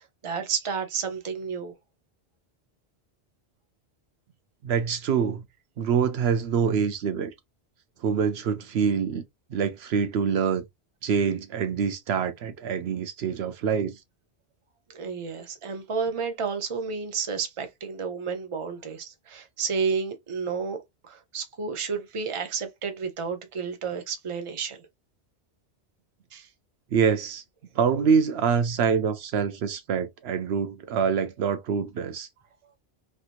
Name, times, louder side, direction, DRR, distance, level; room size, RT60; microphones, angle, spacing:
voice 1, 0.2-1.7 14.9-20.8 21.0-24.8 26.3-26.5, right 5 dB, 35° right, 0.7 m, -31 dB
voice 2, 4.6-5.4 5.8-7.3 8.0-9.2 9.5-10.6 11.0-14.0 26.9-27.4 27.8-32.3, right 6 dB, 70° right, 0.8 m, -25 dB
3.3 x 2.8 x 2.5 m
omnidirectional pair, 1.1 m